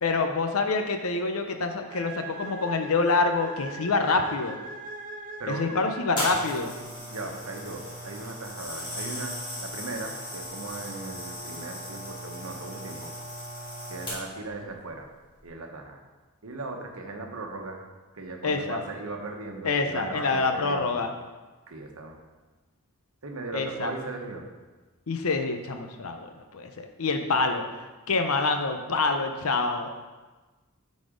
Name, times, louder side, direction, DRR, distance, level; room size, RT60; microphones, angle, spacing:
voice 1, 0.0-4.6 5.5-6.7 18.4-18.8 19.6-21.1 23.5-23.9 25.1-29.9, left 3 dB, 75° left, 5 dB, 0.7 m, -26 dB
sound 1, 1.9-6.8, right 2 dB, 40° right, 0.7 m, -41 dB
voice 2, 5.4-5.8 6.8-13.1 13.9-15.1 15.4-16.0 16.4-17.8 18.1-21.1 21.7-22.2 23.2-24.4, right 3 dB, 75° right, 2 dB, 1.1 m, -38 dB
sound 2, 6.2-14.5 15.2-15.4, equal, 25° left, 2.5 m, -37 dB
8.6 x 4.1 x 5.1 m, 1.2 s
head